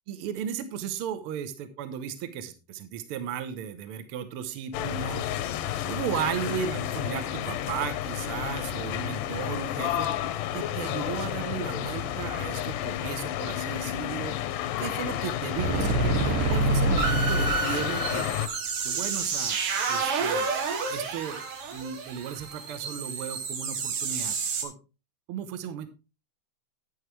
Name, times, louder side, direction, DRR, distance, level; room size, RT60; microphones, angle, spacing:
voice 1, 0.1-5.3 5.9-10.1 10.5-14.4 14.8-18.3 18.8-20.6 20.9-24.4 24.6-24.7 25.3-25.9, right 8 dB, 65° right, 10 dB, 1.4 m, -35 dB
sound 1, 4.7-18.5, left 11 dB, 85° left, 2.3 m, -31 dB
sound 2, 14.9-15.0 15.3-15.4 15.6-24.6, right 3 dB, 90° right, 3.3 m, -28 dB
9.7 x 9.5 x 3.3 m, 0.30 s
omnidirectional pair, 3.8 m